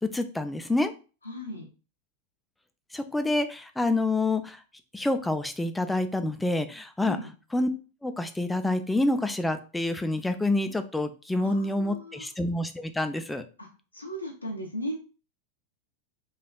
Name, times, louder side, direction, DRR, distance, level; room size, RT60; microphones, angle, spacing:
voice 1, 0.1-0.9 2.9-4.6 4.9-7.2 7.5-7.7 8.0-13.4, left 2 dB, 5° left, 8 dB, 0.3 m, -27 dB
voice 2, 1.2-1.7 7.0-7.3 11.4-12.3 13.6-13.7 13.9-15.0, equal, 80° left, -2 dB, 0.5 m, -36 dB
3.2 x 2.3 x 2.4 m, 0.34 s
figure-of-eight pair, 90°, 0 cm